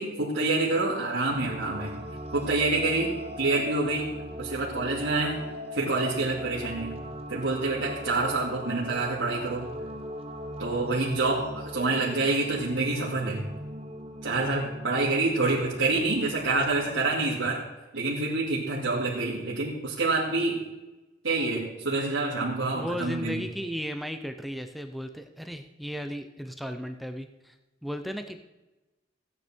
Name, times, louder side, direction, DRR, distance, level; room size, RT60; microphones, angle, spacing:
voice 1, 0.0-2.0 2.3-4.1 4.4-5.4 5.7-7.0 7.3-9.7 10.6-13.4 14.2-17.6 17.9-20.6 21.2-23.4, right 3 dB, 80° right, -7 dB, 2.5 m, -27 dB
sound 1, 1.3-17.0, equal, 30° right, 1.0 m, -39 dB
voice 2, 22.7-27.5 27.8-28.4, equal, ahead, 7 dB, 0.6 m, -35 dB
16.0 x 9.8 x 4.4 m, 1.1 s
head